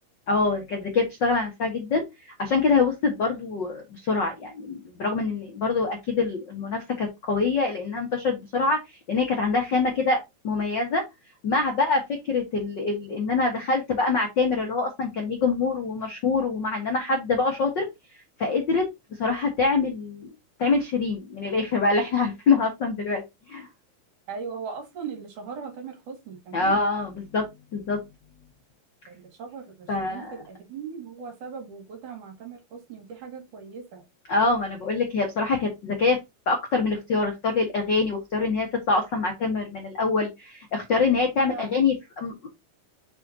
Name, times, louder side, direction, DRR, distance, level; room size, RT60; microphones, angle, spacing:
voice 1, 0.3-2.0 2.4-8.8 9.1-10.2 10.4-11.0 11.4-17.8 18.4-18.9 19.2-20.3 20.6-23.7 26.5-27.4 27.7-28.0 29.9-30.3 34.3-36.2 36.5-42.5, left 4 dB, 55° left, 3 dB, 1.2 m, -25 dB
voice 2, 24.3-26.8 29.1-34.0 41.5-41.7, right 6 dB, 60° right, 5 dB, 3.3 m, -39 dB
7.2 x 6.2 x 2.8 m, 0.21 s
omnidirectional pair, 4.4 m